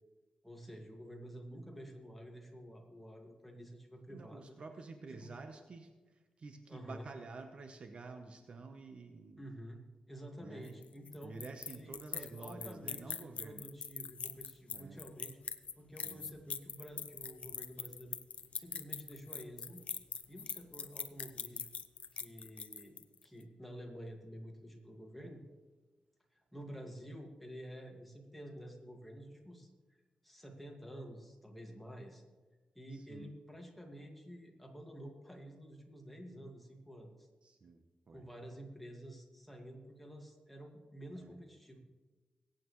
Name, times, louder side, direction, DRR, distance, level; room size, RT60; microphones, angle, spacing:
voice 1, 0.4-4.6 5.1-5.3 6.7-7.1 9.4-15.4 15.8-18.2 18.6-19.9 20.3-21.7 22.1-25.4 26.3-30.0 30.2-32.2 32.8-37.3 38.1-41.8, equal, 5° left, 1 dB, 2.0 m, -50 dB
voice 2, 4.1-5.9 6.4-9.4 10.4-10.8 11.2-13.7 14.7-15.0 16.0-16.3 32.9-33.3 37.4-38.3 41.2-41.3, right 4 dB, 50° right, 6 dB, 1.0 m, -49 dB
sound 1, 10.6-23.2, left 6 dB, 60° left, 0.5 m, -42 dB
21.5 x 9.1 x 3.2 m, 1.3 s
wide cardioid pair, 100°, 2 cm